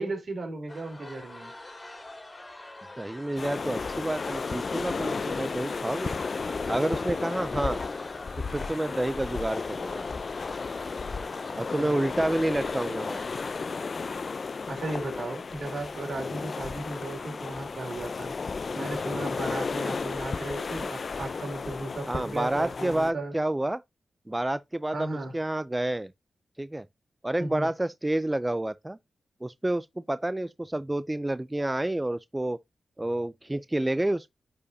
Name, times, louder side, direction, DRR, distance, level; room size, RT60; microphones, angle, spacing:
voice 1, 0.0-1.6 11.8-11.9 12.6-12.7 14.7-18.3 18.7-23.3 24.9-25.3 27.4-27.7, right 2 dB, 55° right, 3.6 m, -35 dB
sound 1, 0.7-13.5, left 1 dB, 20° left, 2.3 m, -45 dB
voice 2, 3.0-6.2 6.7-7.8 8.5-10.0 11.6-13.2 22.1-23.8 24.3-26.1 26.6-26.9 27.2-29.0 29.4-32.6 33.0-34.3, right 1 dB, 15° right, 0.4 m, -29 dB
sound 2, 3.4-23.1, left 4 dB, 55° left, 0.5 m, -33 dB
9.8 x 4.7 x 2.7 m
cardioid pair, 70°, 0 cm